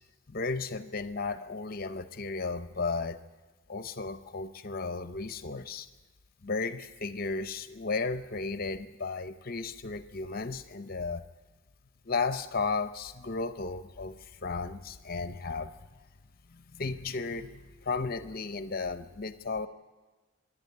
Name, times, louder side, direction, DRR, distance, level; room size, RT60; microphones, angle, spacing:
voice 1, 0.3-3.2 3.7-5.9 6.4-11.2 12.1-15.7 16.5-19.7, left 4 dB, 45° left, 10 dB, 0.7 m, -34 dB
26.5 x 11.5 x 9.8 m, 1.3 s
head